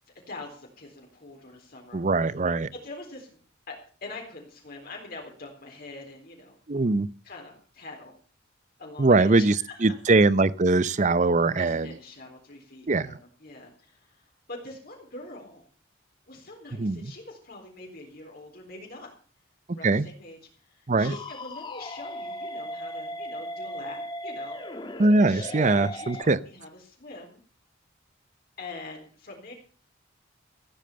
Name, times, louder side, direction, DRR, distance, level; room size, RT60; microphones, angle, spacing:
voice 1, 0.3-2.0 2.7-3.4 3.7-6.6 7.2-8.2 8.8-9.9 11.6-15.6 16.3-19.1 19.7-20.4 20.6-25.0 25.3-27.4 28.6-29.5, left 2 dB, 50° left, 0 dB, 4.0 m, -44 dB
voice 2, 1.9-2.7 6.7-7.1 9.0-9.6 9.8-11.9 12.9-13.2 16.8-17.1 19.8-20.1 20.9-21.2 25.0-26.4, right 3 dB, 40° right, 18 dB, 0.6 m, -22 dB
sound 1, 21.0-26.2, left 1 dB, 25° left, 1.4 m, -37 dB
15.5 x 9.0 x 6.8 m, 0.42 s
head